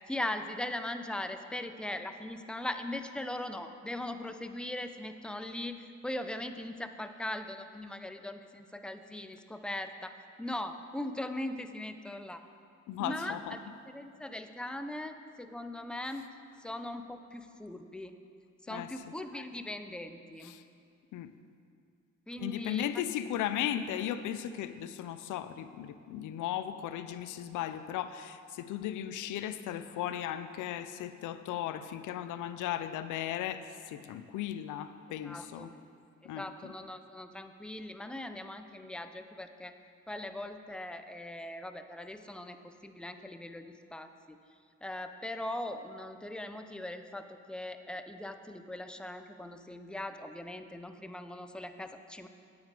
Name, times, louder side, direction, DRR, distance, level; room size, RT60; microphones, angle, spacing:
voice 1, 0.1-12.4 13.0-16.3 16.6-18.2 18.6-20.5 22.3-23.0 35.2-35.7 36.4-39.8 40.1-44.4 44.8-52.3, left 1 dB, 5° left, 8 dB, 0.5 m, -40 dB
voice 2, 12.9-13.5 18.7-18.9 20.4-20.6 21.1-21.3 22.4-33.6 33.9-35.7 36.2-36.7, left 11 dB, 85° left, 12 dB, 0.5 m, -36 dB
9.6 x 8.6 x 4.9 m, 2.4 s
cardioid pair, 90°, 30 cm